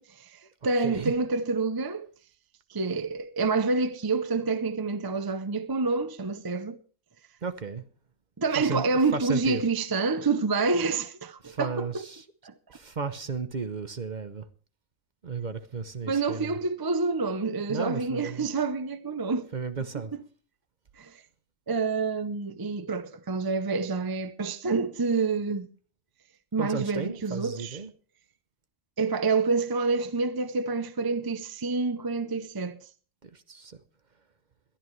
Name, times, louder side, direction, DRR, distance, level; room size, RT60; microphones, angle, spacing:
voice 1, 0.0-2.1 2.7-6.8 8.4-11.8 12.4-12.5 16.1-19.5 21.0-21.1 21.7-25.7 26.5-27.8 29.0-32.8, right 4 dB, 25° right, 0.5 m, -28 dB
voice 2, 0.8-1.1 7.4-7.8 8.5-8.8 9.1-9.6 11.4-12.3 12.7-14.5 15.2-16.6 17.7-18.5 19.5-20.1 26.6-27.9 33.2-33.8, right 5 dB, 40° right, 0.9 m, -34 dB
21.5 x 12.0 x 3.2 m
omnidirectional pair, 1.3 m